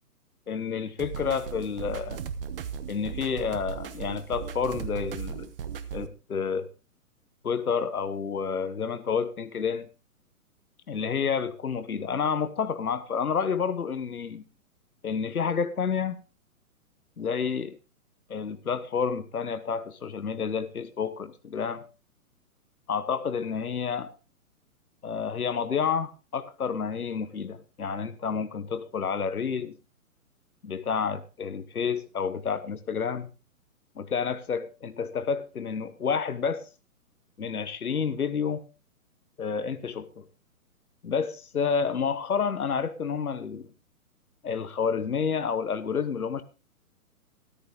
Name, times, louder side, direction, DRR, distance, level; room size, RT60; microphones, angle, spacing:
voice 1, 0.5-2.2 2.9-5.5 5.9-6.7 7.4-9.9 10.9-14.4 15.0-16.2 17.2-17.8 18.3-21.8 22.9-24.1 25.0-29.7 30.6-33.3 34.0-36.7 37.4-38.6 39.4-40.2 41.0-43.7 44.4-46.4, left 6 dB, 75° left, 1.1 m, -29 dB
sound 1, 1.0-6.1, right 8 dB, 40° right, 1.2 m, -37 dB
13.5 x 13.0 x 3.7 m
figure-of-eight pair, 125°, 44 cm